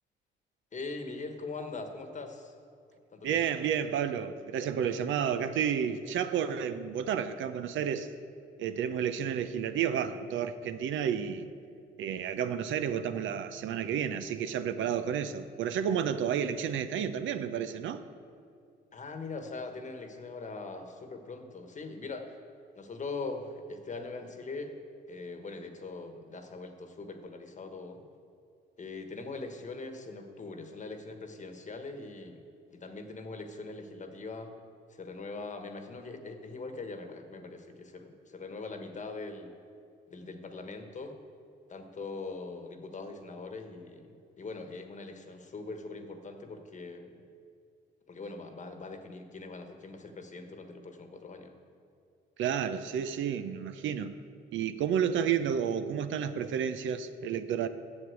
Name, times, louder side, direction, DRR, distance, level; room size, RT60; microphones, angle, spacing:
voice 1, 0.7-2.5 3.1-3.4 18.9-22.4 22.8-24.8 25.1-28.0 28.8-32.4 32.7-34.5 34.9-39.5 40.1-41.1 41.7-44.1 44.4-47.2 48.1-51.5, left 3 dB, 40° left, 6 dB, 1.2 m, -41 dB
voice 2, 3.2-8.1 8.6-11.5 12.0-18.0 52.4-54.1 54.5-57.7, right 8 dB, 75° right, 11 dB, 0.6 m, -31 dB
7.9 x 7.3 x 8.0 m, 2.4 s
cardioid pair, 90°, 20 cm